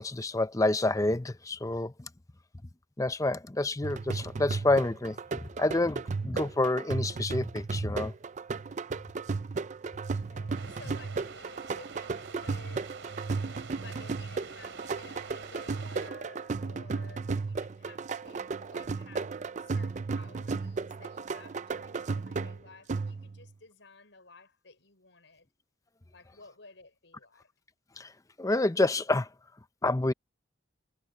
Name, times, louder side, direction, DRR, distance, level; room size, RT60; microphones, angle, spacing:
voice 1, 0.0-1.9 3.0-8.1 28.0-28.1 28.4-29.3 29.8-30.1, left 2 dB, 15° left, 0.6 m, -28 dB
sound 1, 3.8-23.5, right 4 dB, 40° right, 0.4 m, -35 dB
voice 2, 10.0-12.9 13.8-25.5 26.1-27.5, left 3 dB, 70° left, 6.0 m, -54 dB
sound 2, 10.5-16.1, right 5 dB, 75° right, 3.4 m, -47 dB
head